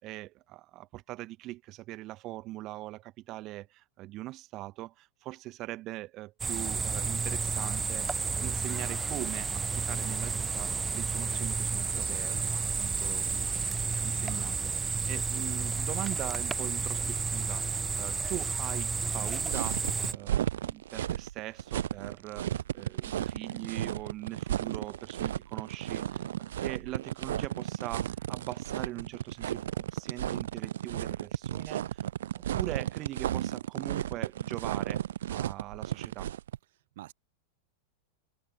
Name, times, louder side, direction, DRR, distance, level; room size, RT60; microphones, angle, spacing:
voice 1, 0.0-12.3 12.8-13.3 13.8-32.1 32.5-36.3, right 17 dB, 25° right, 2.5 m, -41 dB
sound 1, 6.4-20.1, right 5 dB, 10° right, 1.0 m, -31 dB
voice 2, 11.9-12.5 12.9-13.5 36.9-37.1, right 15 dB, 55° right, 1.8 m, -47 dB
sound 2, 19.5-36.6, right 11 dB, 85° right, 0.4 m, -34 dB
supercardioid pair, 180°, 0 cm